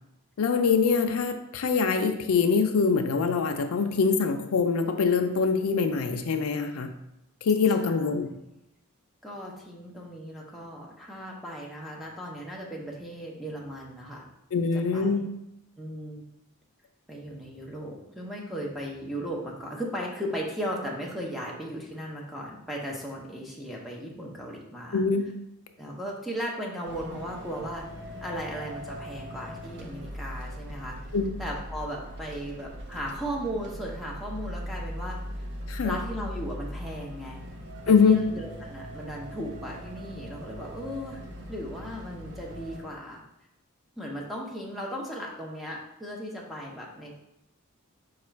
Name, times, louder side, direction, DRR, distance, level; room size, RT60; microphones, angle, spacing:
voice 1, 0.4-6.9 7.4-8.3 14.5-15.3 24.9-25.3 31.1-31.3 35.7-36.0 37.9-38.2, left 5 dB, 80° left, 6 dB, 0.4 m, -24 dB
voice 2, 9.2-14.3 14.7-15.1 15.8-16.3 17.1-25.0 25.8-27.8 28.2-31.0 31.4-35.2 35.8-37.4 37.9-41.2 41.5-43.2 44.0-47.2, equal, ahead, -3 dB, 0.7 m, -36 dB
sound 1, 26.9-42.8, equal, 50° right, 0.6 m, -40 dB
4.9 x 2.4 x 4.3 m, 0.87 s
head